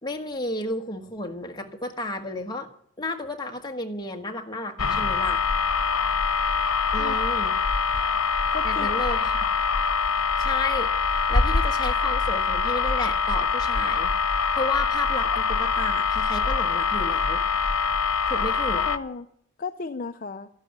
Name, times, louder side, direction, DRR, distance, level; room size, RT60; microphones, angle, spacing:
voice 1, 0.0-2.7 3.0-5.4 6.9-7.5 8.6-9.5 10.4-10.9 11.3-14.1 14.5-17.4 18.3-18.8, left 2 dB, 20° left, 2 dB, 1.4 m, -32 dB
sound 1, 4.8-19.0, left 5 dB, 75° left, 1.0 m, -24 dB
voice 2, 7.0-7.4 8.5-9.0 18.8-19.3 19.6-20.5, left 4 dB, 40° left, 7 dB, 0.5 m, -34 dB
13.0 x 11.0 x 8.8 m, 0.68 s
head